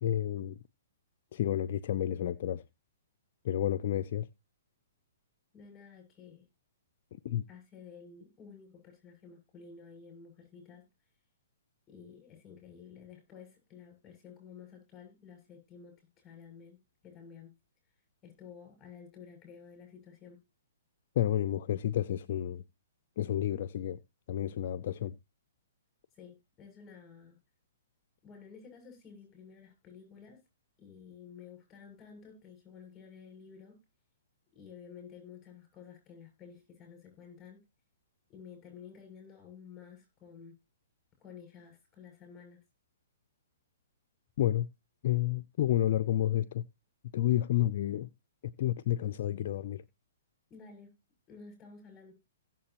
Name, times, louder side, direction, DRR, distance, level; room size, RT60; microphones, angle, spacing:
voice 1, 0.0-0.6 1.3-2.6 3.4-4.3 7.1-7.5 21.2-22.6 23.2-24.0 24.3-25.2 44.4-44.7 45.0-46.6 47.1-48.1 48.4-49.8, left 12 dB, 55° left, 0.5 m, -30 dB
voice 2, 5.5-6.4 7.5-10.9 11.9-17.5 18.2-20.4 26.1-27.4 28.2-30.4 30.8-33.8 34.5-37.6 38.3-40.6 41.2-42.6 50.5-50.9 51.3-52.1, left 6 dB, 20° left, 7.3 m, -52 dB
16.5 x 7.4 x 2.9 m
hypercardioid pair, 135°, 0 cm